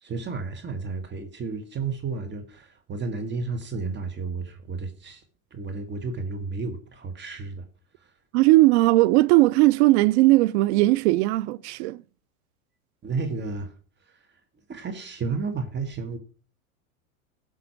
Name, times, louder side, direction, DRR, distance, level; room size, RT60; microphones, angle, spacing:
voice 1, 0.0-5.2 5.5-7.6 13.0-13.7 14.7-16.2, right 4 dB, 25° right, 1.8 m, -32 dB
voice 2, 8.3-12.0, right 19 dB, 50° right, 0.5 m, -18 dB
17.0 x 6.0 x 4.6 m
hypercardioid pair, 95°, 42 cm